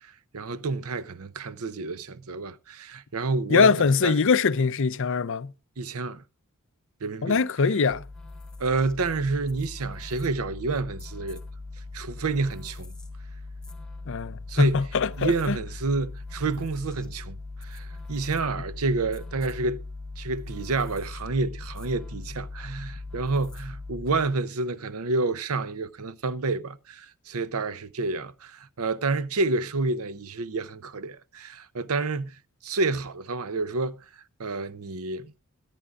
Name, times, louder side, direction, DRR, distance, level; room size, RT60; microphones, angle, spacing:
voice 1, 0.0-4.2 5.8-6.2 7.0-7.4 8.6-11.4 11.9-12.9 14.5-14.8 15.2-19.8 20.2-34.0 34.4-35.3, right 3 dB, 85° right, 0.7 m, -29 dB
voice 2, 3.5-5.5 7.2-8.0 14.1-15.6, left 5 dB, 65° left, 0.6 m, -22 dB
sound 1, 7.9-24.4, left 3 dB, 5° left, 1.8 m, -40 dB
23.0 x 10.0 x 2.4 m
head